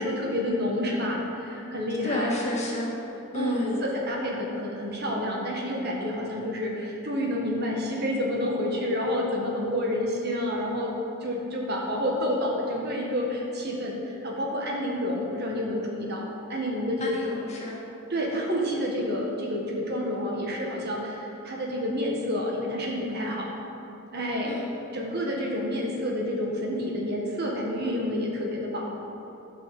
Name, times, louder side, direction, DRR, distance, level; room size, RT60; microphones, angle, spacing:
voice 1, 0.0-2.4 3.3-10.9 11.2-16.2 16.5-17.2 18.1-23.5 24.1-24.5 24.9-28.9, left 1 dB, 45° right, -1 dB, 1.6 m, -29 dB
voice 2, 2.0-2.9 3.3-3.8 17.0-17.8 24.4-24.7, left 1 dB, 30° left, -4 dB, 2.0 m, -30 dB
11.5 x 6.1 x 7.6 m, 2.9 s
head